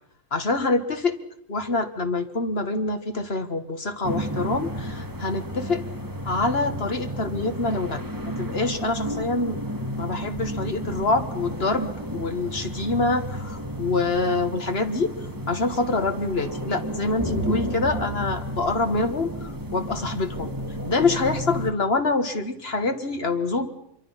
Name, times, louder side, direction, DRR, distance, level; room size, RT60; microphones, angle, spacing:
voice 1, 0.3-1.2 1.5-5.8 6.3-8.0 8.4-9.6 10.0-15.1 15.5-20.5 20.9-23.7, left 3 dB, 50° left, 7 dB, 1.9 m, -25 dB
sound 1, 4.0-21.7, equal, 15° right, 1.6 m, -32 dB
25.5 x 23.5 x 5.8 m, 0.76 s
omnidirectional pair, 1.4 m